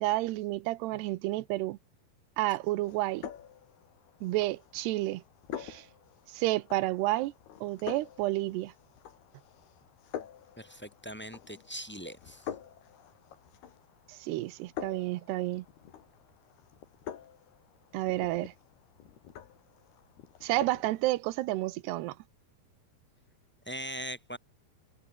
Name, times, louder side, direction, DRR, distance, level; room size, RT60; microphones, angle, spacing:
voice 1, 0.0-1.8 2.4-3.3 4.2-5.2 5.6-5.9 6.3-7.3 7.6-8.7 14.1-15.6 17.9-18.5 20.4-22.2, right 18 dB, 90° right, 3.0 m, -30 dB
sound 1, 2.8-21.1, left 10 dB, 75° left, 4.3 m, -47 dB
voice 2, 10.6-12.5 23.7-24.4, equal, ahead, 5.8 m, -41 dB
omnidirectional pair, 4.6 m